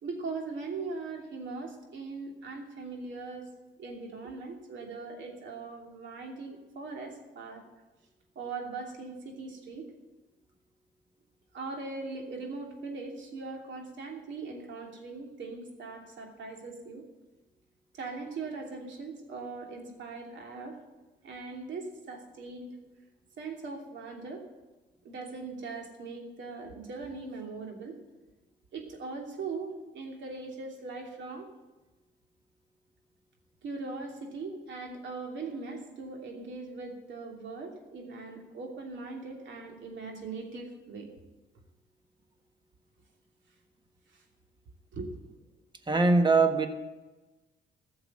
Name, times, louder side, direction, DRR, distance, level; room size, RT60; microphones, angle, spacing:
voice 1, 0.0-3.5 3.8-7.6 8.3-9.9 11.5-17.0 17.9-20.8 21.2-22.7 23.4-24.5 25.0-28.0 28.7-31.5 33.6-41.1 44.1-44.2 44.9-45.2, right 3 dB, 70° right, 2 dB, 2.9 m, -40 dB
voice 2, 45.9-46.7, right 3 dB, 25° right, 7 dB, 1.5 m, -22 dB
14.5 x 7.2 x 7.7 m, 1.1 s
cardioid pair, 90°, 20 cm